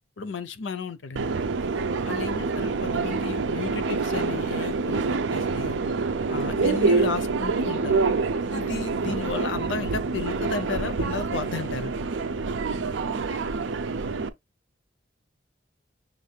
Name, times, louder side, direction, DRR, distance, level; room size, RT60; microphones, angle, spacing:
voice 1, 0.2-1.3 2.0-5.8 6.3-8.0 8.5-11.9, left 4 dB, 85° left, 0.6 m, -33 dB
Subway metro underground, 1.2-14.3, right 4 dB, 85° right, 0.5 m, -26 dB
6.4 x 2.6 x 3.2 m
head